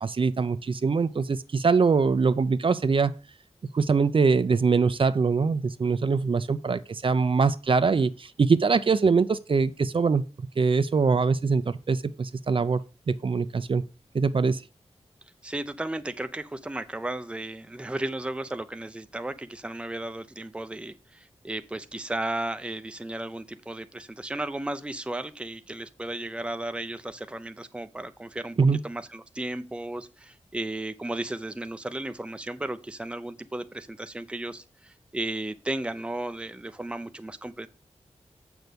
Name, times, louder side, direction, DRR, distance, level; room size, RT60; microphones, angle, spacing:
voice 1, 0.0-3.1 3.7-10.2 10.6-13.8 14.1-14.6 28.6-28.8, right 4 dB, 50° right, 0.6 m, -23 dB
voice 2, 15.4-37.7, right 1 dB, 10° right, 0.6 m, -34 dB
8.0 x 6.2 x 5.2 m
wide cardioid pair, 110°, 12 cm